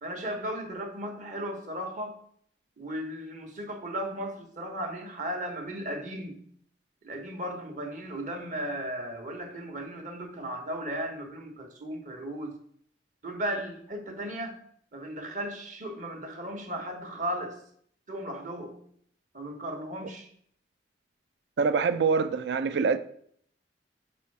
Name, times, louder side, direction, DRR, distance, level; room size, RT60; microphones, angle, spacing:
voice 1, 0.0-2.2 2.8-6.4 7.0-12.5 13.2-14.6 14.9-17.5 18.1-18.7 19.3-20.3, right 1 dB, 45° right, 1.0 m, -36 dB
voice 2, 21.6-23.0, right 5 dB, 65° right, 0.4 m, -25 dB
5.3 x 4.3 x 4.6 m
head